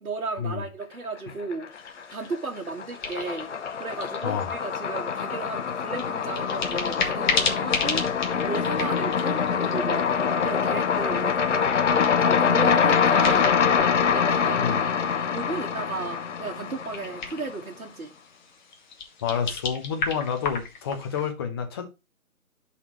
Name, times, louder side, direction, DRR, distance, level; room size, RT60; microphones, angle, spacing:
voice 1, 0.0-1.7 2.1-3.5 3.8-8.0 8.4-10.1 10.4-11.8 12.2-13.5 14.1-14.8 15.3-18.1, right 3 dB, 75° right, 1.6 m, -34 dB
sound 1, 1.3-2.0 2.3-17.5, left 6 dB, 55° left, 0.8 m, -24 dB
sound 2, 1.7-21.3, left 4 dB, 30° left, 1.3 m, -35 dB
voice 2, 4.2-4.6 14.6-14.8 19.2-21.8, left 7 dB, 15° left, 0.8 m, -29 dB
12.0 x 4.2 x 3.0 m
figure-of-eight pair, 145°, 42 cm